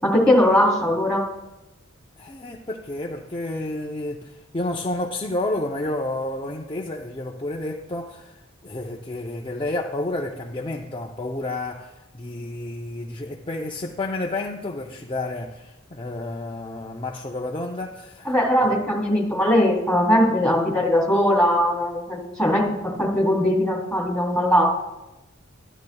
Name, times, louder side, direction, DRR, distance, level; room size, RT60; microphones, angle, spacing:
voice 1, 0.0-1.2 18.2-24.7, left 1 dB, 5° left, 3.0 m, -20 dB
voice 2, 2.2-18.3, left 2 dB, 25° left, 0.6 m, -30 dB
13.5 x 11.5 x 2.3 m
head